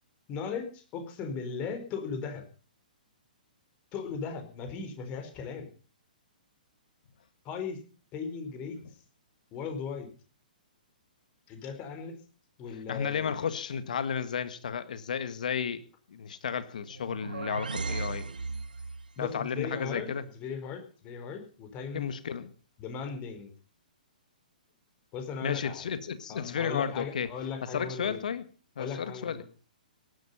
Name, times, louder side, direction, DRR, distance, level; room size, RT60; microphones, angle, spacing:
voice 1, 0.3-2.4 3.9-5.7 7.4-7.8 8.1-8.8 9.5-10.1 11.5-12.2 12.6-13.3 19.2-22.1 22.8-23.5 25.1-25.9 26.3-28.2 28.8-29.4, left 5 dB, 30° left, 7 dB, 4.6 m, -37 dB
voice 2, 12.9-15.8 16.1-18.3 19.2-20.2 21.9-22.5 25.4-27.3 27.7-28.4 28.7-29.4, left 7 dB, 60° left, 13 dB, 1.7 m, -33 dB
sound 1, 16.8-19.1, right 4 dB, 75° right, 0.8 m, -36 dB
18.0 x 12.0 x 5.6 m, 0.39 s
figure-of-eight pair, 120°, 5 cm